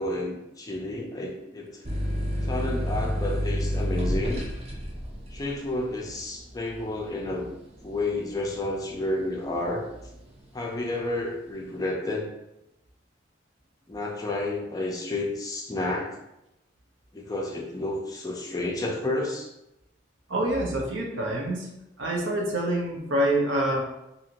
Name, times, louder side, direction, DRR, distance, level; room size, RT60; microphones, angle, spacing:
voice 1, 0.0-1.8 2.4-4.4 5.3-7.5 7.8-9.8 10.5-12.3 13.9-16.2 17.1-19.5, left 2 dB, 20° left, 0 dB, 0.4 m, -31 dB
sound 1, 1.8-9.1 9.6-10.3, equal, 35° right, 0.5 m, -30 dB
voice 2, 20.3-21.7 22.0-23.8, right 1 dB, 85° right, -1 dB, 0.7 m, -26 dB
2.7 x 2.5 x 2.8 m, 0.89 s
head